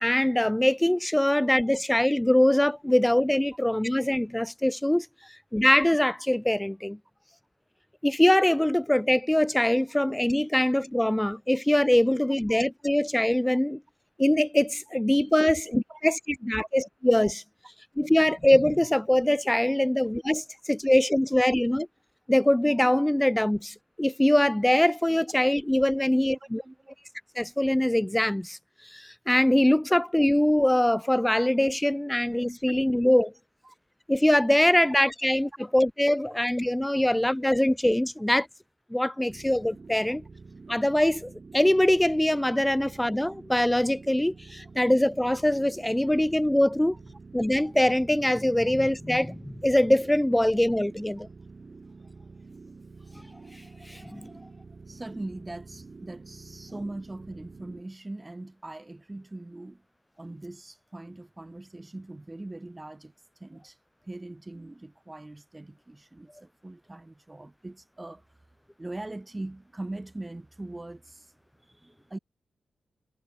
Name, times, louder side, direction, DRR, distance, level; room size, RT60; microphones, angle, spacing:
voice 1, 0.0-5.1 5.5-7.0 8.0-13.8 14.2-16.1 16.4-17.4 18.0-21.9 22.3-26.6 27.4-28.6 28.9-33.3 34.1-38.5 38.9-40.2 40.7-47.0 47.3-51.3 53.9-54.3, left 1 dB, 5° left, 0.9 m, -23 dB
voice 2, 26.0-26.9 32.7-32.8 33.6-33.7 34.8-34.9 40.1-40.2 54.9-59.8 60.2-63.1 63.4-63.8 64.1-68.3 68.8-71.3 71.6-72.2, right 2 dB, 15° right, 5.8 m, -41 dB
sound 1, 39.3-57.8, right 4 dB, 40° right, 5.0 m, -48 dB
wide cardioid pair, 100°, 0 cm